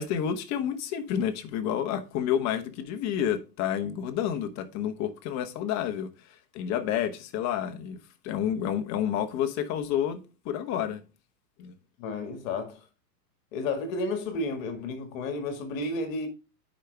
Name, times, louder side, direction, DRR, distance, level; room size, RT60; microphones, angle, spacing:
voice 1, 0.0-8.0 8.2-10.2 10.4-11.0 11.6-11.7, left 9 dB, 35° left, 1.2 m, -29 dB
voice 2, 12.0-12.8 13.5-16.3, left 2 dB, 50° left, 2.0 m, -32 dB
10.0 x 5.3 x 3.4 m
hypercardioid pair, 115°, 49 cm